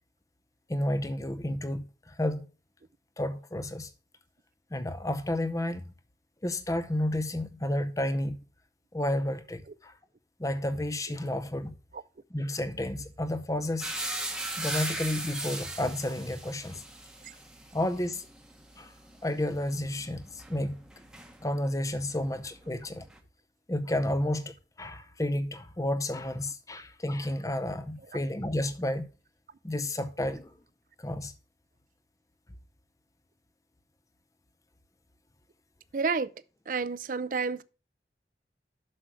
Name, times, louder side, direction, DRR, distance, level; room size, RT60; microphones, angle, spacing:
voice 1, 0.7-2.5 3.2-3.9 4.7-5.8 6.4-8.4 8.9-9.9 10.4-11.7 12.3-13.9 14.3-16.8 17.7-18.3 18.8-18.9 19.2-20.8 21.4-23.1 23.7-29.1 29.6-30.5 31.0-31.3, left 1 dB, 20° left, 0.6 m, -31 dB
sound 1, 13.8-21.8 22.1-23.2, right 1 dB, 5° right, 1.0 m, -38 dB
voice 2, 35.9-36.3 36.7-37.6, right 4 dB, 45° right, 0.4 m, -30 dB
7.6 x 6.3 x 4.5 m
head